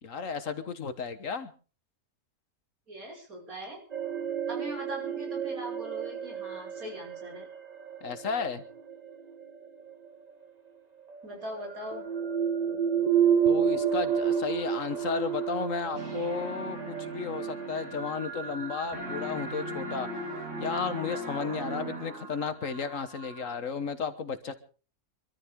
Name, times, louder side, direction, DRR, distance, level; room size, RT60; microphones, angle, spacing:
voice 1, 0.0-1.5 8.0-8.6 13.4-20.1 20.6-24.5, left 6 dB, 65° left, 11 dB, 1.7 m, -33 dB
voice 2, 2.9-3.8 4.5-7.5 11.2-12.1 21.5-21.6, right 1 dB, 85° right, 0 dB, 6.2 m, -41 dB
sound 1, 3.9-9.9 11.1-23.5, right 7 dB, 30° right, 1.7 m, -31 dB
sound 2, 15.9-18.7 18.9-22.5, equal, 60° right, 7.0 m, -39 dB
25.0 x 13.5 x 3.7 m, 0.37 s
omnidirectional pair, 1.5 m